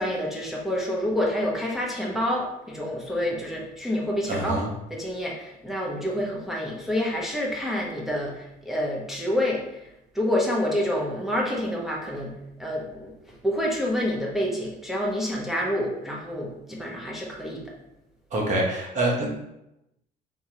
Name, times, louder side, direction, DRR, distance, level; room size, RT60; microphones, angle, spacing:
voice 1, 0.0-4.6 4.9-9.9 10.1-12.3 12.6-13.1 13.4-17.7, left 1 dB, ahead, -3 dB, 0.8 m, -28 dB
voice 2, 4.3-4.7 18.3-19.3, right 1 dB, 45° right, -1 dB, 1.0 m, -25 dB
3.7 x 2.9 x 2.9 m, 0.86 s
cardioid pair, 110°, 17 cm